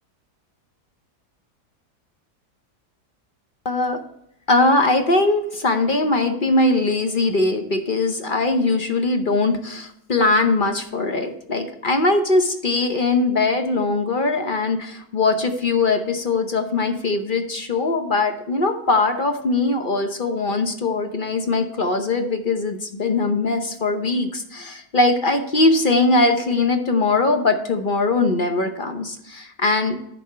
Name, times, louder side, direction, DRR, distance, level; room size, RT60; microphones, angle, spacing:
voice 1, 3.6-4.0 4.5-30.0, left 3 dB, 40° left, 6 dB, 0.8 m, -21 dB
10.5 x 4.2 x 5.6 m, 0.76 s
omnidirectional pair, 1.6 m